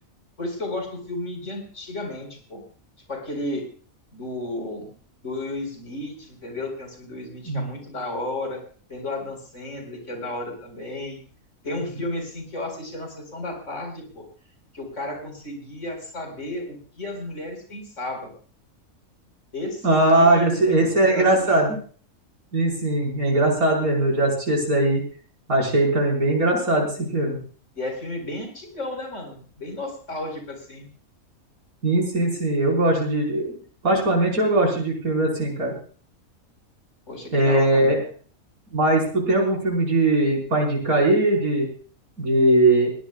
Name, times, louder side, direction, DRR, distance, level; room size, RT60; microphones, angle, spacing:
voice 1, 0.4-2.6 3.1-3.6 4.1-4.9 5.2-8.6 8.9-11.2 11.6-14.2 14.7-18.3 19.5-21.6 27.7-30.9 37.1-38.0, left 2 dB, 55° left, 3 dB, 5.0 m, -33 dB
voice 2, 19.8-21.8 22.5-25.0 25.5-27.4 31.8-33.5 33.8-35.7 37.3-38.0 38.7-41.7 42.2-42.9, right 1 dB, 85° right, -2 dB, 5.6 m, -20 dB
21.5 x 17.5 x 2.4 m, 0.43 s
omnidirectional pair, 1.5 m